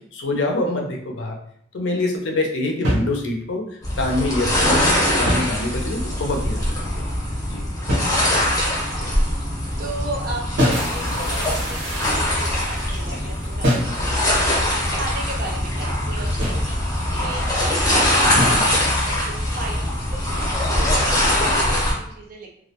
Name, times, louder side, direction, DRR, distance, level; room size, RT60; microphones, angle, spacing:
voice 1, 0.1-1.4 1.7-3.6 4.0-7.0 7.5-7.6, left 2 dB, 70° left, 2 dB, 0.5 m, -25 dB
sound 1, 2.8-3.6 5.1-6.1 7.9-8.7 10.6-11.0 13.6-14.0 16.4-16.7 18.4-18.7, equal, 75° right, 0.8 m, -24 dB
sound 2, 3.8-21.9, left 1 dB, 20° left, 0.7 m, -22 dB
voice 2, 8.2-9.3 9.8-22.5, right 2 dB, 50° right, 0 dB, 0.5 m, -36 dB
sound 3, 10.7-14.5 14.7-15.1 15.6-15.9, right 1 dB, 90° right, 1.1 m, -36 dB
2.3 x 2.1 x 2.8 m, 0.68 s
head